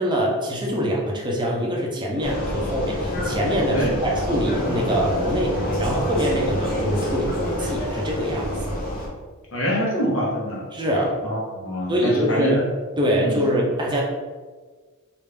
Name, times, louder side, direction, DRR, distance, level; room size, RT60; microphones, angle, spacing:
voice 1, 0.0-5.5 5.8-8.8 10.7-11.2 11.9-12.6 13.0-14.0, equal, 20° right, -2 dB, 0.6 m, -24 dB
Vehicle, 2.2-9.1, equal, 40° left, 0.6 m, -27 dB
voice 2, 9.5-10.6 11.2-12.6 13.2-13.5, equal, 65° left, -4 dB, 1.1 m, -25 dB
3.3 x 2.5 x 3.3 m, 1.4 s
head